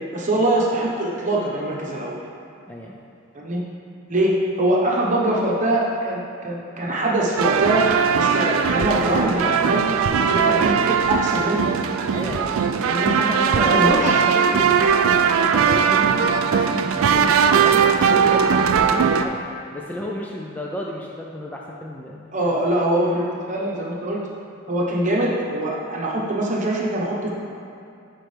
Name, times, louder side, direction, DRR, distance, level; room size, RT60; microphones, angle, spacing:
voice 1, 0.1-2.2 3.3-3.6 4.1-11.7 12.8-13.1 13.6-14.2 22.3-24.2 24.7-27.3, right 1 dB, 35° right, -4 dB, 1.1 m, -23 dB
voice 2, 2.7-3.0 12.1-12.6 13.0-19.4 19.7-22.6, equal, 5° left, -2 dB, 0.4 m, -32 dB
sound 1, 7.4-19.3, right 6 dB, 70° right, 0.4 m, -19 dB
10.0 x 4.6 x 3.3 m, 2.5 s
head